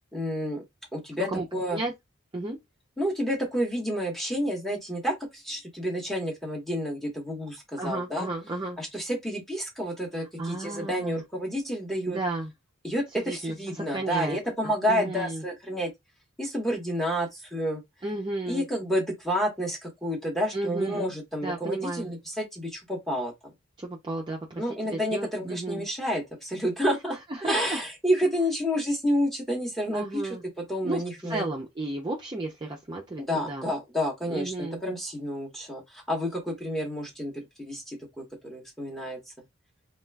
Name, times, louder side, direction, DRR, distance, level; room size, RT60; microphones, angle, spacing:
voice 1, 0.1-0.6 0.9-1.8 3.0-8.3 8.8-12.2 12.8-15.9 16.4-17.8 18.5-23.3 24.6-27.2 27.4-30.2 30.7-31.4 33.2-37.3 37.6-39.2, equal, ahead, 0.8 m, -29 dB
voice 2, 7.8-8.8 10.4-11.2 12.1-12.5 13.2-15.4 18.0-18.7 20.5-21.1 21.4-22.1 23.8-25.9 27.1-27.8 29.9-30.4 30.8-33.7 34.3-34.8, right 2 dB, 20° right, 0.4 m, -33 dB
2.3 x 2.2 x 3.2 m
head